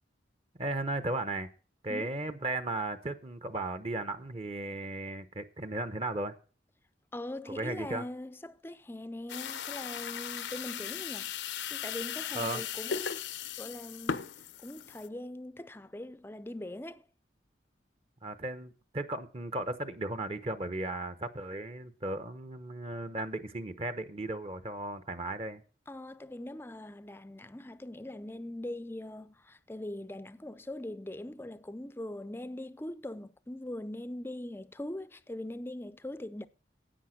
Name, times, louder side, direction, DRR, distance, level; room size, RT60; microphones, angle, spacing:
voice 1, 0.6-1.5 1.8-6.4 7.5-8.0 12.3-12.6 18.2-25.6, right 2 dB, 30° right, 0.8 m, -36 dB
voice 2, 7.1-11.3 11.7-13.2 13.6-17.1 25.9-36.5, left 1 dB, 10° left, 0.5 m, -41 dB
sound 1, 9.3-15.1, left 8 dB, 80° left, 0.7 m, -37 dB
10.0 x 8.5 x 6.3 m
head